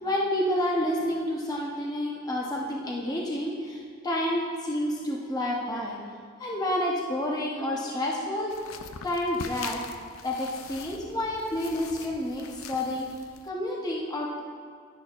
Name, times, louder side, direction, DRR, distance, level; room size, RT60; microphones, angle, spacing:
voice 1, 0.0-6.0 6.4-8.5 9.0-9.8 10.2-13.1 13.4-14.4, left 1 dB, 20° left, -3 dB, 0.9 m, -29 dB
sound 1, 8.5-13.5, left 6 dB, 85° left, 0.5 m, -43 dB
11.0 x 10.5 x 2.5 m, 2.1 s
head